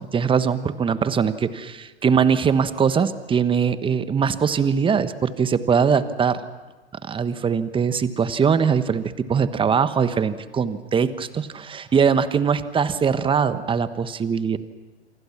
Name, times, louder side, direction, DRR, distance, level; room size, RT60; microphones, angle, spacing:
voice 1, 0.0-6.4 7.0-14.6, right 6 dB, 15° right, 12 dB, 1.3 m, -21 dB
28.5 x 24.5 x 6.0 m, 1.2 s
hypercardioid pair, 110°, 33 cm